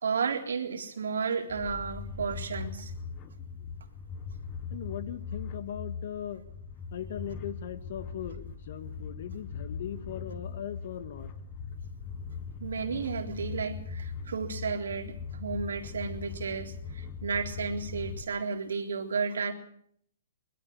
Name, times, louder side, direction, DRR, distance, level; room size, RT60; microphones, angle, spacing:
voice 1, 0.0-2.9 12.6-19.5, right 5 dB, 80° right, 3 dB, 3.8 m, -33 dB
sound 1, 1.5-18.2, left 5 dB, 25° left, 1.4 m, -40 dB
voice 2, 4.7-6.4 6.9-11.3, left 10 dB, 55° left, 12 dB, 1.8 m, -39 dB
21.0 x 13.0 x 9.6 m, 0.66 s
hypercardioid pair, 155°, 0 cm